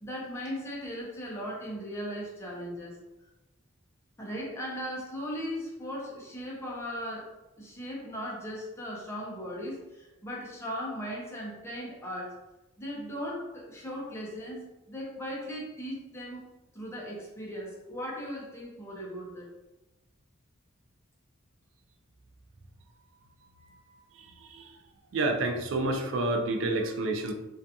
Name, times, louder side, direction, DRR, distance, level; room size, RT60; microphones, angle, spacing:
voice 1, 0.0-3.0 4.2-7.3 7.6-12.4 12.8-16.4 16.7-19.6, equal, 10° left, -4 dB, 0.6 m, -38 dB
voice 2, 25.1-27.3, right 2 dB, 65° right, 4 dB, 0.4 m, -28 dB
2.4 x 2.3 x 2.6 m, 1.0 s
head